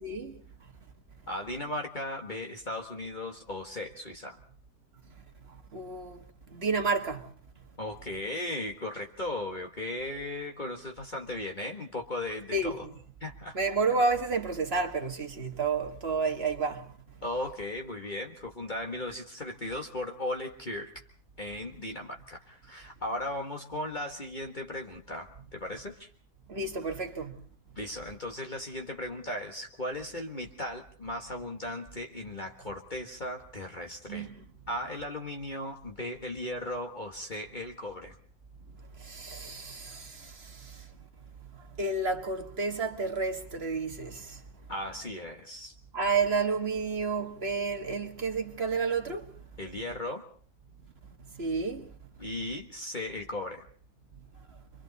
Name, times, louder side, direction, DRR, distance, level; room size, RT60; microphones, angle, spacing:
voice 1, 0.0-0.4 5.7-6.2 6.5-7.3 12.5-12.9 13.5-16.9 26.5-27.4 34.1-34.3 39.0-40.9 41.8-44.4 45.9-49.3 51.3-51.9, right 4 dB, 40° right, 1.9 m, -30 dB
voice 2, 1.3-4.4 7.8-12.9 13.2-13.6 17.2-20.9 21.4-26.1 27.8-34.3 34.7-38.1 44.7-45.7 49.6-50.2 52.2-53.6, left 1 dB, 30° left, 1.8 m, -37 dB
29.0 x 24.0 x 4.1 m
omnidirectional pair, 1.7 m